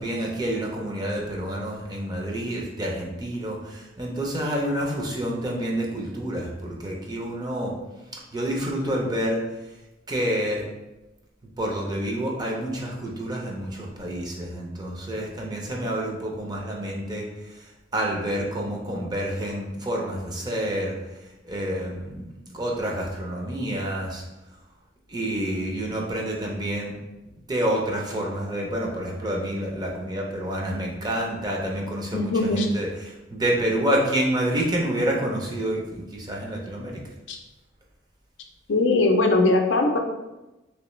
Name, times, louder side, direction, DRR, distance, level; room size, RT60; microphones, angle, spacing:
voice 1, 0.0-7.7 8.3-9.4 10.1-10.6 11.6-17.7 17.9-20.9 21.4-24.2 25.1-27.0 27.5-37.0, right 1 dB, 20° right, -1 dB, 0.6 m, -28 dB
voice 2, 32.1-32.7 37.3-37.4 38.7-40.0, left 2 dB, 70° left, 3 dB, 0.5 m, -20 dB
3.2 x 3.0 x 3.1 m, 1.0 s
head